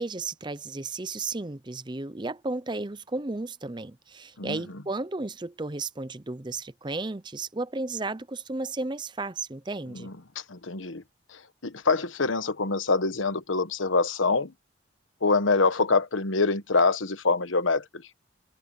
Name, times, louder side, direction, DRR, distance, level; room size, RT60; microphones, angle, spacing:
voice 1, 0.0-10.1, right 3 dB, 25° right, 0.6 m, -33 dB
voice 2, 10.5-11.0 11.3-14.5 15.2-18.0, left 3 dB, 85° left, 1.3 m, -25 dB
head